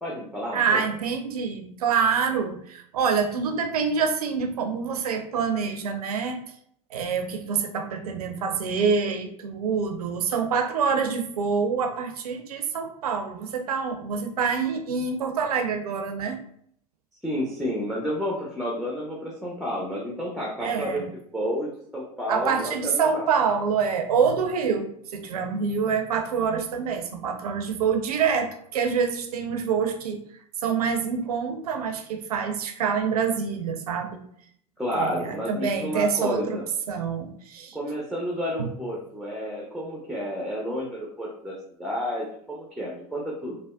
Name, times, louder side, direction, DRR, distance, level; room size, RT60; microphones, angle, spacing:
voice 1, 0.0-0.8 17.2-21.0 21.3-23.3 34.8-36.6 37.7-43.6, equal, ahead, -3 dB, 0.5 m, -31 dB
voice 2, 0.5-6.4 6.9-16.4 20.6-21.1 22.3-30.2 30.6-34.2 34.9-36.6 36.9-37.8 38.6-38.7, right 6 dB, 70° right, 5 dB, 0.5 m, -26 dB
3.4 x 2.1 x 2.3 m, 0.67 s
figure-of-eight pair, 80°, 20 cm